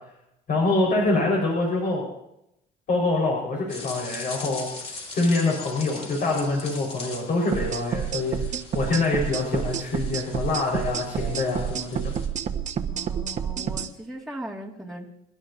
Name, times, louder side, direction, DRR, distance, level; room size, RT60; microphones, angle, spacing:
voice 1, 0.5-2.0 2.9-4.7 5.1-12.1, left 2 dB, 60° left, -3 dB, 4.6 m, -25 dB
sound 1, 3.7-12.3, left 3 dB, 35° left, 2.9 m, -41 dB
sound 2, 7.5-13.9, right 8 dB, 45° right, 1.3 m, -29 dB
voice 2, 12.9-15.1, equal, 5° left, -3 dB, 2.0 m, -38 dB
27.5 x 11.5 x 2.7 m, 0.82 s
cardioid pair, 110°, 17 cm